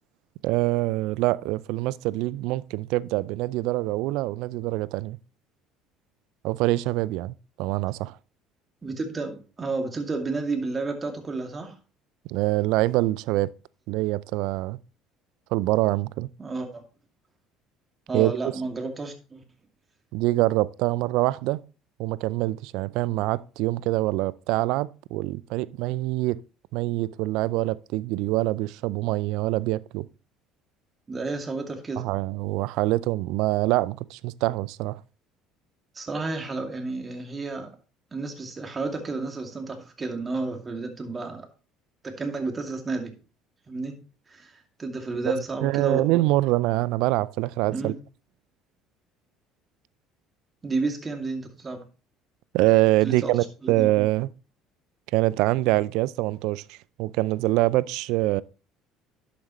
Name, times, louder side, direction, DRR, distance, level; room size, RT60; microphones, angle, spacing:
voice 1, 0.4-5.2 6.4-8.2 12.2-13.5 13.9-14.8 15.5-16.3 18.1-18.4 20.1-21.6 22.0-26.4 26.7-30.1 32.0-35.0 45.3-47.9 52.5-54.3 55.1-58.4, right 18 dB, 70° right, 0.4 m, -25 dB
voice 2, 8.8-11.8 16.4-16.8 18.1-19.4 31.1-32.1 35.9-37.8 38.1-41.5 42.0-43.2 43.7-43.9 44.3-46.0 47.7-48.0 50.6-51.9 53.0-53.3 53.6-53.9, right 3 dB, 30° right, 2.4 m, -31 dB
11.0 x 7.2 x 3.0 m
hypercardioid pair, 65°, 0 cm